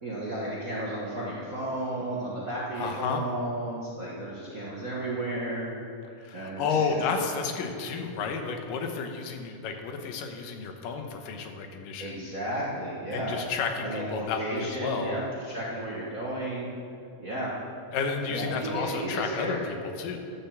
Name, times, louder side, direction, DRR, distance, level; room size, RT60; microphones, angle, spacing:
voice 1, 0.0-5.7 6.0-7.0 12.0-13.4 13.8-16.7 17.2-17.5 18.3-19.6, right 1 dB, 45° right, -6 dB, 1.1 m, -33 dB
voice 2, 2.8-3.2 6.2-12.2 13.1-15.2 17.9-20.2, left 5 dB, 90° left, 4 dB, 2.7 m, -31 dB
11.5 x 6.9 x 7.3 m, 2.4 s
omnidirectional pair, 3.8 m